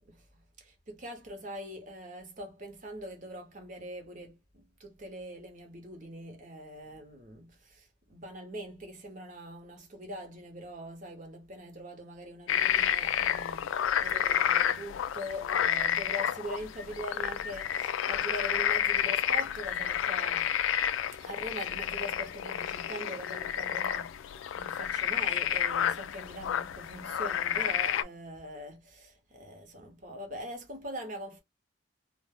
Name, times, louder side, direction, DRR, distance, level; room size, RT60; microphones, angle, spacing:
voice 1, 0.1-20.5 21.2-31.4, equal, 40° right, 0.9 m, -42 dB
sound 1, 12.5-28.0, left 10 dB, 85° left, 0.3 m, -30 dB
2.5 x 2.2 x 3.4 m
head